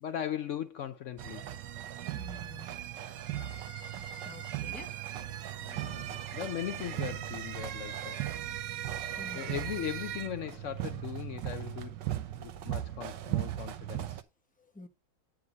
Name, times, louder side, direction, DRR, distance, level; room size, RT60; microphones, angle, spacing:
voice 1, 0.0-1.5 5.6-8.2 9.3-12.0 12.4-14.2, left 10 dB, 90° left, 0.6 m, -39 dB
sound 1, 1.2-14.2, right 12 dB, 75° right, 1.4 m, -37 dB
voice 2, 2.1-2.7 4.2-4.9 5.3-5.4 9.2-9.7 14.7-14.9, left 2 dB, 5° left, 0.8 m, -48 dB
9.7 x 3.8 x 5.1 m
omnidirectional pair, 1.9 m